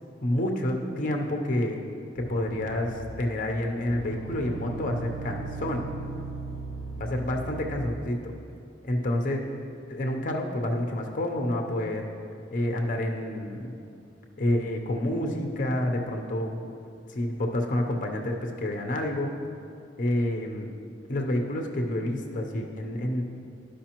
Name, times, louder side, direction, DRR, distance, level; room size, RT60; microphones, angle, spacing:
voice 1, 0.2-1.8 2.1-5.9 7.0-8.3 8.8-9.4 9.9-12.1 12.5-13.7 14.4-16.6 17.1-19.4 20.0-20.7 21.1-23.2, left 1 dB, 45° left, 2 dB, 0.6 m, -28 dB
sound 1, 2.2-3.3 3.9-8.0, right 3 dB, 50° right, 1.3 m, -38 dB
12.5 x 5.0 x 2.9 m, 2.5 s
head